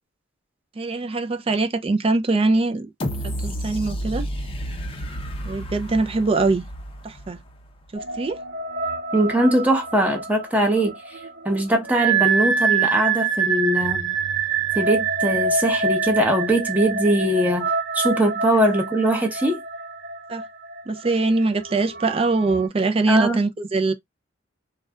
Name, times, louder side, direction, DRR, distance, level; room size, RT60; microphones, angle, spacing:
voice 1, 0.8-2.9 3.2-4.3 5.4-6.6 7.0-7.4 7.9-8.4 20.3-20.4 20.9-23.9, right 3 dB, 30° right, 0.4 m, -22 dB
sound 1, 3.0-7.9 8.3-8.4, equal, 30° left, 0.5 m, -31 dB
sound 2, 7.9-22.7, right 5 dB, 55° right, 1.1 m, -26 dB
voice 2, 9.1-11.2 11.4-14.2 14.7-19.6 23.1-23.4, right 1 dB, 10° right, 0.7 m, -21 dB
2.4 x 2.2 x 3.5 m
head